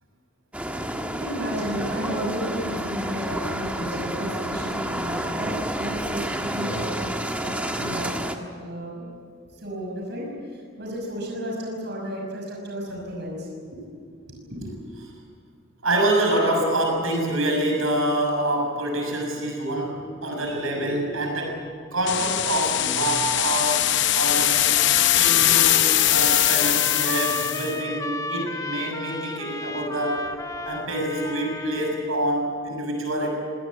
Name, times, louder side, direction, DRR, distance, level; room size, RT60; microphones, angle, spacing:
sound 1, 0.5-8.4, right 1 dB, 5° right, 1.3 m, -30 dB
voice 1, 1.2-8.3 8.6-9.1 9.6-10.3 10.8-13.5 14.4-14.7 20.1-20.2 20.5-21.2, equal, 55° right, -1 dB, 5.7 m, -33 dB
voice 2, 15.8-21.6 21.9-24.8 25.1-30.3 30.6-33.3, right 1 dB, 85° right, 1 dB, 6.7 m, -26 dB
sound 2, 22.1-27.7, left 13 dB, 60° left, 0.7 m, -21 dB
Trumpet, 24.2-32.1, left 2 dB, 15° left, 0.9 m, -34 dB
25.0 x 19.0 x 8.6 m, 2.1 s
head